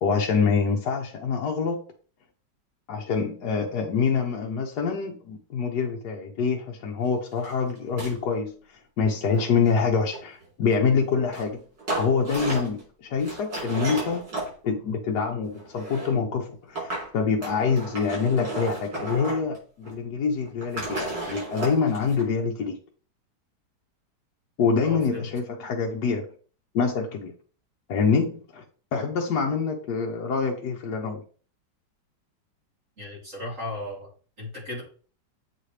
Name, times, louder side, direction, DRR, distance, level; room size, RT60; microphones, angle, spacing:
voice 1, 0.0-1.8 2.9-11.6 12.0-14.2 14.6-22.8 24.6-26.2 26.7-27.3 27.9-28.6 28.9-31.2, left 5 dB, 70° left, 0 dB, 1.3 m, -26 dB
sound 1, 7.4-7.5 7.8-8.1 9.2-10.5 11.3-11.5 11.8-12.8 13.2-14.5 15.4-16.2 16.8-17.1 17.4-19.6 19.8-19.9 20.5-22.2, right 2 dB, 85° right, 4.4 m, -33 dB
voice 2, 24.8-25.3 33.0-34.1 34.4-34.8, left 2 dB, 45° right, -5 dB, 3.7 m, -35 dB
8.1 x 4.2 x 3.3 m, 0.41 s
omnidirectional pair, 1.9 m